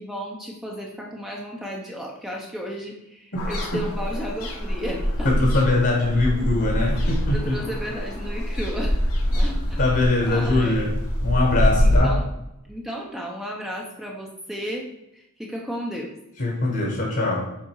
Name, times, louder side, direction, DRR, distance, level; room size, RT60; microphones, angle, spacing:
voice 1, 0.0-5.4 7.3-9.0 9.3-10.9 11.8-12.2 12.6-14.9 15.1-16.1, equal, ahead, -2 dB, 0.8 m, -34 dB
sound 1, 3.4-12.0, equal, 70° left, 1.7 m, -24 dB
voice 2, 5.2-7.6 9.8-10.9 11.2-12.2 16.4-17.5, left 2 dB, 50° left, -1 dB, 1.5 m, -22 dB
7.4 x 4.2 x 4.7 m, 0.87 s
head